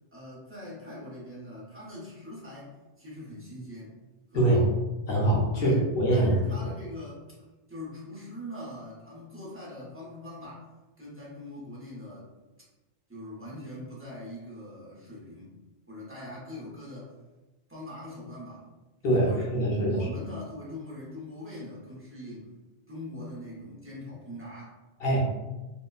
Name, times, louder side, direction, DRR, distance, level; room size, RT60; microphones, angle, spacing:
voice 1, 0.1-3.9 4.3-4.7 5.5-5.8 6.1-7.2 7.7-10.7 11.0-12.3 13.1-15.5 15.9-17.1 17.7-18.6 19.0-19.5 19.8-22.5 22.9-24.7, left 1 dB, 15° right, -7 dB, 0.7 m, -42 dB
voice 2, 5.1-6.3 19.0-20.1 25.0-25.2, right 1 dB, 60° left, -5 dB, 1.0 m, -24 dB
2.9 x 2.1 x 2.3 m, 1.1 s
omnidirectional pair, 1.2 m